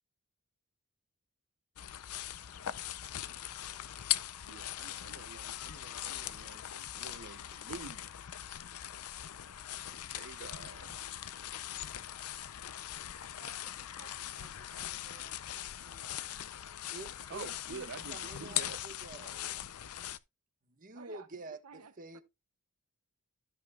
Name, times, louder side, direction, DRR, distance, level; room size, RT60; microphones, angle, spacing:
sound 1, 1.8-20.2, left 12 dB, 80° left, 0.6 m, -40 dB
voice 1, 4.4-8.2 9.8-11.1 17.3-18.8, right 5 dB, 55° right, 0.7 m, -48 dB
voice 2, 13.3-15.5 15.8-16.3 20.9-22.2, right 5 dB, 85° right, 1.1 m, -57 dB
voice 3, 16.9-19.6 20.7-22.2, right 2 dB, 40° right, 1.3 m, -48 dB
13.5 x 6.6 x 2.4 m
head